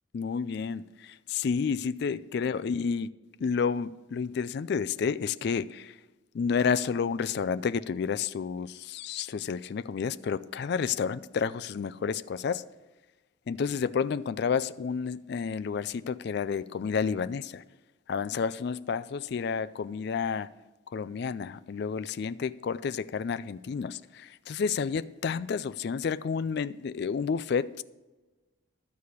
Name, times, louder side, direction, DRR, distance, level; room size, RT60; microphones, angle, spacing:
voice 1, 0.1-3.1 3.4-5.9 6.3-12.6 13.5-17.6 18.1-20.5 20.9-27.8, left 6 dB, 55° left, 0.3 m, -30 dB
13.0 x 4.8 x 8.3 m
head